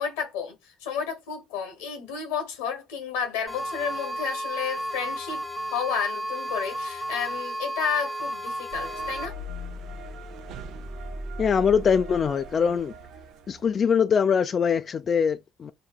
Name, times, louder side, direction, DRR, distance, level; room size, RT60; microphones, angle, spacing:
voice 1, 0.0-5.4 5.7-9.4, left 6 dB, 90° left, 1.1 m, -31 dB
sound 1, 3.5-9.3, right 1 dB, 5° right, 1.0 m, -33 dB
sound 2, 8.7-13.7, right 1 dB, 70° right, 0.5 m, -39 dB
voice 2, 11.4-12.9 13.5-15.7, left 6 dB, 45° left, 0.3 m, -23 dB
5.8 x 2.2 x 2.3 m
supercardioid pair, 70°, 0 cm